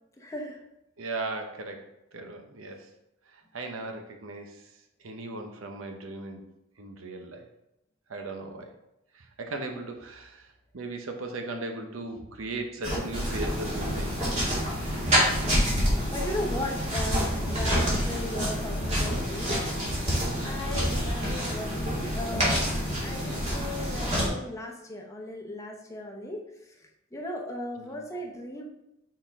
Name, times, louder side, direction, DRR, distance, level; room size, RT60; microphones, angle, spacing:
voice 1, 0.2-0.6 9.7-9.8 16.1-20.0 20.4-22.7 23.0-28.7, left 1 dB, 15° left, 0 dB, 0.8 m, -37 dB
voice 2, 1.0-1.8 2.1-2.9 3.5-4.6 5.0-6.4 6.8-7.5 8.1-8.7 9.1-10.5 10.7-14.3 14.8-15.9 17.6-17.8 20.7-21.1 27.8-28.0, right 2 dB, 80° right, 4 dB, 0.8 m, -38 dB
sound 1, 12.8-24.3, equal, 35° right, 2.2 m, -27 dB
6.2 x 4.2 x 3.6 m, 0.87 s
head